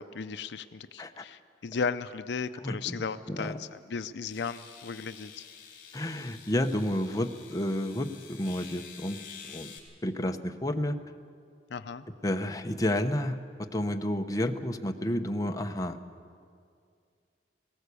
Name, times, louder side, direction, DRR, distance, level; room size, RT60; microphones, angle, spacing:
voice 1, 0.0-5.5 11.7-12.0, left 5 dB, 70° left, 11 dB, 0.5 m, -35 dB
voice 2, 2.6-3.0 3.3-3.6 5.9-9.2 9.5-9.7 10.0-11.0 12.2-16.0, left 1 dB, 20° left, 5 dB, 0.8 m, -31 dB
sound 1, 4.3-9.8, left 7 dB, 55° left, 3.1 m, -49 dB
18.0 x 18.0 x 8.3 m, 2.3 s
head